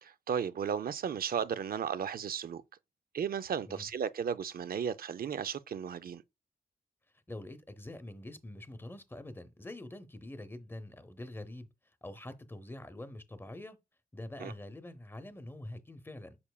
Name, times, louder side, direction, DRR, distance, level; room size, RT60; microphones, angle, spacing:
voice 1, 0.0-2.6 3.1-6.2 14.4-14.5, right 7 dB, 75° right, 0.5 m, -34 dB
voice 2, 7.3-11.7 12.0-13.8 14.1-16.4, left 1 dB, 15° left, 0.8 m, -45 dB
6.9 x 6.9 x 2.3 m
wide cardioid pair, 170°, 15 cm